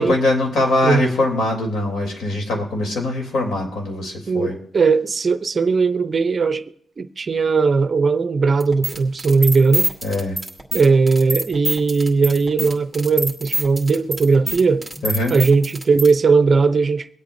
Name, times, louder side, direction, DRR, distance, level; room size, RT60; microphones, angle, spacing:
voice 1, 0.0-4.5 10.0-10.4 15.0-15.3, left 2 dB, 70° left, 3.2 m, -22 dB
voice 2, 4.3-6.6 7.0-9.9 10.7-14.9 15.3-17.1, right 4 dB, 40° right, 0.6 m, -18 dB
sound 1, 8.6-16.1, right 1 dB, 5° left, 2.5 m, -26 dB
24.0 x 8.4 x 2.7 m
cardioid pair, 95°, 0 cm